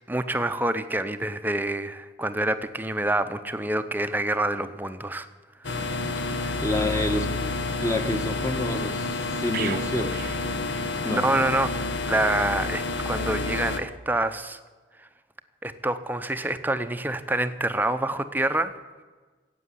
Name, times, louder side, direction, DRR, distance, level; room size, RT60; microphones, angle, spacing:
voice 1, 0.1-5.3 5.7-5.8 6.3-6.5 11.1-11.7 12.1-14.6 15.6-18.7, right 1 dB, 10° right, 10 dB, 0.7 m, -27 dB
sound 1, 5.6-13.8, left 3 dB, 75° left, 1.3 m, -29 dB
voice 2, 6.6-7.3 7.8-10.2 11.0-11.3, left 1 dB, 15° left, 6 dB, 1.2 m, -28 dB
sound 2, 9.5-11.4 11.7-11.9, right 9 dB, 50° right, 0.6 m, -38 dB
15.0 x 8.5 x 10.0 m, 1.3 s
head